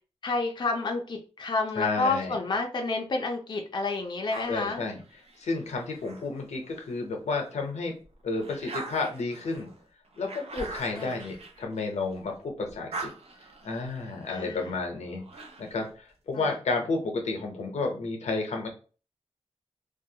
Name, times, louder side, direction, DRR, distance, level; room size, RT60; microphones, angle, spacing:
voice 1, 0.2-4.8 10.9-11.2 14.3-14.7 16.3-16.5, left 3 dB, 40° left, 2 dB, 0.4 m, -30 dB
voice 2, 1.8-2.4 4.5-5.0 5.4-7.9 8.2-9.7 10.2-13.1 13.6-15.2 15.6-18.7, left 3 dB, 90° left, 2 dB, 0.6 m, -31 dB
sound 1, 4.3-7.0 7.5-12.3 12.6-15.9, right 3 dB, 65° right, 0.5 m, -43 dB
2.4 x 2.2 x 2.7 m, 0.37 s
wide cardioid pair, 100°, 11 cm